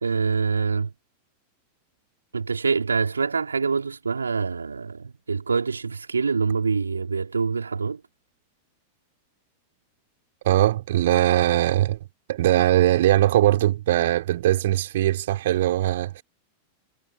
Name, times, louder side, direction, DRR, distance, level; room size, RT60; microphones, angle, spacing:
voice 1, 0.0-0.9 2.3-8.0, right 5 dB, 75° right, 3.6 m, -25 dB
voice 2, 10.4-12.0 12.3-16.2, right 14 dB, 55° right, 4.8 m, -20 dB
figure-of-eight pair, 90°, 0 cm